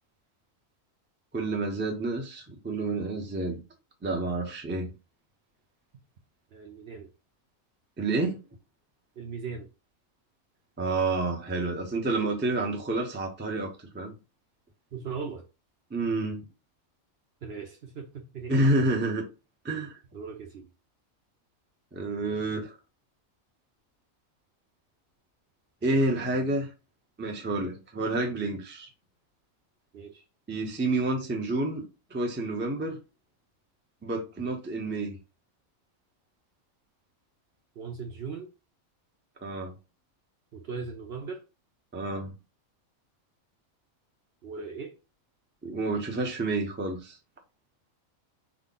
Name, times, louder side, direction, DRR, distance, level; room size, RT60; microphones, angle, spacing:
voice 1, 1.3-3.6 4.0-4.9 8.0-8.4 10.8-14.1 15.9-16.4 18.5-19.3 19.6-20.0 21.9-22.8 25.8-26.7 27.2-28.9 30.5-33.0 34.0-35.2 39.4-39.8 41.9-42.3 45.6-47.2, right 2 dB, 15° right, 0.4 m, -29 dB
voice 2, 6.5-7.1 9.2-9.7 14.9-15.5 17.4-18.5 20.1-20.7 29.9-30.2 37.8-38.5 40.5-41.5 44.4-45.0, right 5 dB, 60° right, 0.7 m, -38 dB
3.6 x 2.2 x 3.7 m
omnidirectional pair, 1.5 m